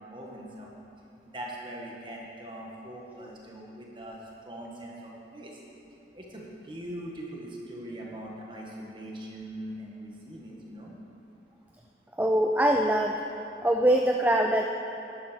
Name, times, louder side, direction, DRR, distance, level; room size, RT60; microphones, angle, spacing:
voice 1, 0.1-0.7 1.3-4.2 4.4-5.6 6.1-10.9, right 1 dB, 25° right, -2 dB, 1.8 m, -41 dB
voice 2, 12.2-13.2 13.6-14.7, right 1 dB, 10° right, 2 dB, 0.4 m, -23 dB
12.5 x 10.5 x 5.2 m, 2.9 s
head